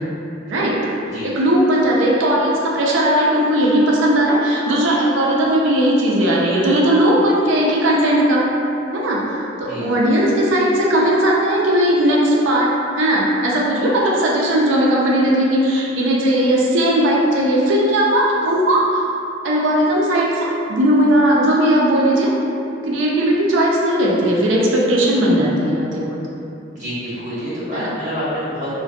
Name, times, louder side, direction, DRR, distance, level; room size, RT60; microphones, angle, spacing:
voice 1, 0.5-0.8 1.2-8.5 8.9-9.3 9.6-19.0 19.4-22.3 22.8-26.2 27.7-27.9, right 1 dB, 80° right, -3 dB, 0.4 m, -17 dB
voice 2, 26.7-28.7, equal, 40° right, -13 dB, 1.2 m, -27 dB
2.5 x 2.1 x 2.2 m, 2.8 s
head